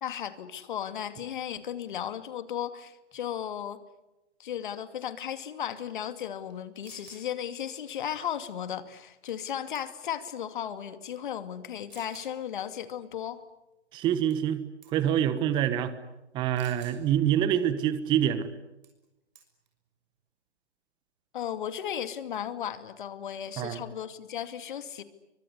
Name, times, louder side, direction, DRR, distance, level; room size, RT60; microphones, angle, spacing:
voice 1, 0.0-3.8 4.4-13.4 21.3-25.0, left 9 dB, 45° left, 11 dB, 2.5 m, -35 dB
sound 1, 6.5-6.6 6.8-7.3 9.3-9.5 9.8-10.2 10.9-11.0 11.9-12.3 14.3-14.6 14.8-15.1 16.6-17.0 18.8-19.0 19.4-19.7, right 8 dB, 40° right, 6.4 m, -53 dB
voice 2, 13.9-14.6 14.9-15.9 16.3-18.5 23.6-23.8, right 10 dB, 15° right, 13 dB, 1.2 m, -26 dB
30.0 x 24.5 x 8.2 m, 0.97 s
figure-of-eight pair, 145°, 35 cm